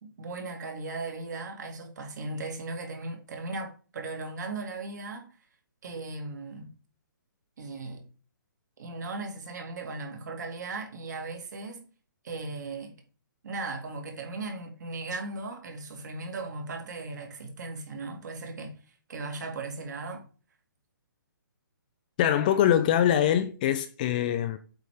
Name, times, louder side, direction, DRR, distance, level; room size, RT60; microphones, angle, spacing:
voice 1, 0.0-5.3 5.8-6.7 7.6-8.1 8.8-11.8 12.2-12.9 13.4-18.7 19.1-20.2, right 3 dB, 55° right, 2.2 m, -37 dB
voice 2, 22.2-24.6, left 10 dB, 25° left, 0.4 m, -23 dB
7.8 x 3.5 x 4.9 m
hypercardioid pair, 160°, 11 cm